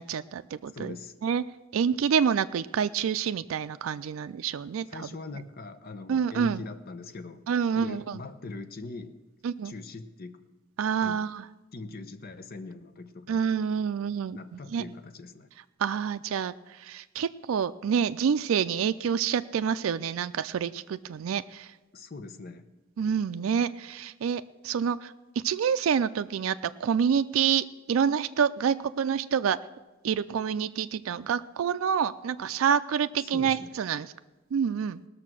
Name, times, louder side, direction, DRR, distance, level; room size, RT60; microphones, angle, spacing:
voice 1, 0.0-1.0 1.2-1.4 1.7-5.1 6.1-6.6 7.5-8.2 9.4-9.7 10.8-11.5 13.3-14.4 14.7-14.8 15.8-21.7 23.0-25.1 25.4-29.6 30.0-34.1 34.5-35.0, right 7 dB, 75° right, 10 dB, 0.4 m, -27 dB
voice 2, 0.7-1.1 4.9-7.4 7.8-9.2 9.6-10.4 11.0-11.2 11.7-13.5 14.3-15.5 21.9-22.7 33.2-33.8, left 3 dB, 45° left, 10 dB, 0.8 m, -41 dB
18.5 x 6.6 x 6.1 m, 1.2 s
head